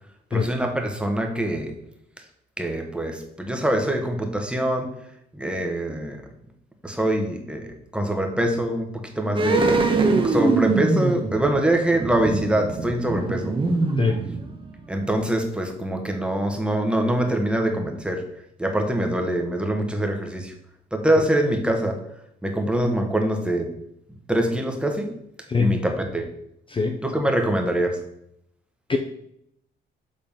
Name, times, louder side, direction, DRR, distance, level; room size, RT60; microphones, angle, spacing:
voice 1, 0.3-1.7 2.6-4.9 5.3-6.2 6.8-9.7 10.2-13.6 14.9-18.2 18.6-20.5 20.9-22.0 22.4-23.7 24.3-25.1 25.6-26.3 27.0-28.0, right 1 dB, 5° right, 3 dB, 1.4 m, -24 dB
sound 1, 9.4-14.8 15.1-15.2, right 3 dB, 25° right, 1.2 m, -23 dB
voice 2, 25.5-25.8 26.7-27.0 28.9-29.0, left 5 dB, 25° left, 5 dB, 0.6 m, -22 dB
7.3 x 3.9 x 5.3 m, 0.74 s
cardioid pair, 90°, 20 cm